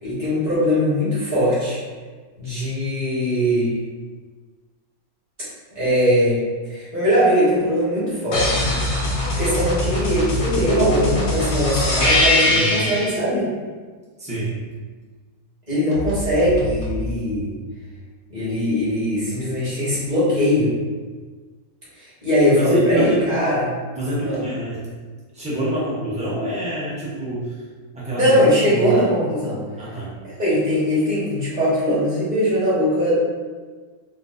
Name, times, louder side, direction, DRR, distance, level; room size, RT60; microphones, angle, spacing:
voice 1, 0.0-1.8 2.4-3.7 5.7-6.4 6.7-8.8 9.4-13.5 15.7-17.5 18.3-20.7 22.0-23.6 24.2-24.4 28.1-29.6 30.4-33.1, equal, 30° right, -10 dB, 1.5 m, -20 dB
sound 1, 8.3-13.2 15.9-17.0, left 1 dB, 85° left, 1.4 m, -22 dB
voice 2, 12.5-12.8 14.2-14.5 22.6-23.2 23.9-24.8 25.3-27.5 27.9-28.4 28.7-28.9 29.8-30.1, equal, 5° right, -8 dB, 0.6 m, -26 dB
4.4 x 2.3 x 2.5 m, 1.4 s
omnidirectional pair, 1.5 m